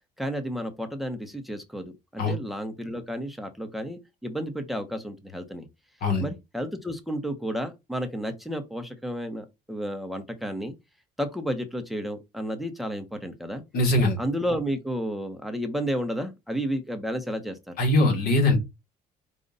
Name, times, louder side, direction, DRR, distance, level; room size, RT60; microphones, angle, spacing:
voice 1, 0.2-5.7 6.2-10.7 11.2-13.6 14.2-17.7, equal, ahead, 0.9 m, -32 dB
voice 2, 13.7-14.2 17.8-18.6, left 2 dB, 65° left, 1.6 m, -21 dB
5.2 x 2.4 x 3.9 m
cardioid pair, 110°, 17 cm